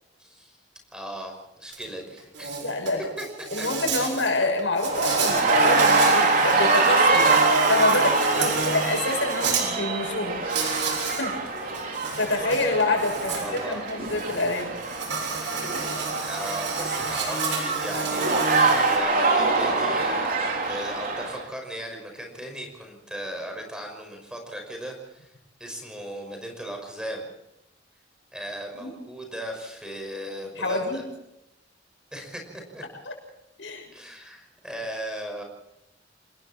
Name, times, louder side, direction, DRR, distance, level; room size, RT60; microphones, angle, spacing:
voice 1, 0.2-0.6 0.9-2.6 3.2-3.3 3.6-3.7 3.9-4.1 8.3-8.7 11.7-12.0 13.3-13.9 15.6-25.3 25.6-27.3 28.3-31.0 32.1-32.8 33.9-35.4, equal, 5° right, 3 dB, 5.8 m, -37 dB
Insect, 1.7-1.8 2.2-9.6 10.5-11.2 11.6-19.0, right 4 dB, 80° right, 7.0 m, -31 dB
voice 2, 2.6-3.1 3.5-10.5 10.7-11.4 12.1-14.7 28.7-28.9 30.6-31.0 33.0-33.1 33.6-33.9, left 2 dB, 85° left, 3 dB, 6.7 m, -27 dB
sound 1, 4.8-21.4, right 3 dB, 50° right, 4.0 m, -24 dB
28.5 x 21.0 x 4.5 m, 0.87 s
head